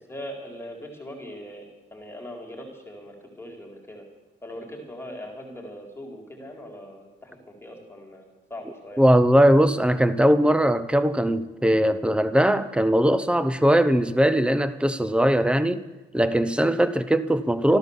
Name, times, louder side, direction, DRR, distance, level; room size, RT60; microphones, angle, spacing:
voice 1, 0.1-4.0 4.4-9.0, equal, 10° left, 4.1 m, -40 dB
voice 2, 9.0-15.9 16.1-17.8, equal, 5° right, 0.9 m, -20 dB
14.0 x 12.0 x 7.2 m
cardioid pair, 90°, 20 cm